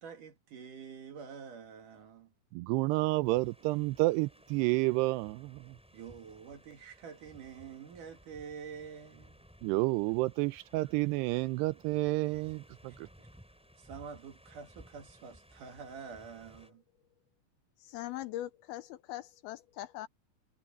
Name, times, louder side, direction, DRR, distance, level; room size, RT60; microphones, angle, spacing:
voice 1, 0.0-2.3 5.9-9.5 12.8-13.3 13.8-16.8, right 6 dB, 55° right, 3.4 m, -47 dB
voice 2, 2.5-5.8 9.6-12.9, right 21 dB, 85° right, 2.7 m, -30 dB
sound 1, 3.2-16.7, equal, ahead, 6.1 m, -59 dB
voice 3, 17.8-20.1, left 14 dB, 80° left, 2.4 m, -41 dB
omnidirectional pair, 4.8 m